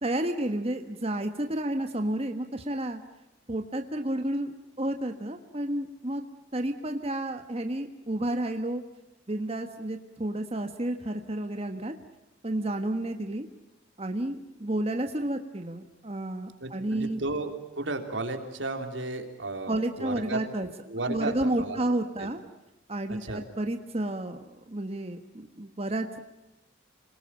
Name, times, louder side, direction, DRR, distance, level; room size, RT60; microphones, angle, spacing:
voice 1, 0.0-3.0 3.5-4.5 4.8-6.3 6.5-8.8 9.3-11.9 12.4-13.5 14.0-17.2 19.7-20.7 21.1-22.4 22.9-26.2, right 1 dB, 35° right, 5 dB, 1.4 m, -31 dB
voice 2, 16.6-20.4 20.9-21.8 23.1-23.4, right 2 dB, 80° right, 5 dB, 3.4 m, -34 dB
28.0 x 20.0 x 8.9 m, 0.99 s
head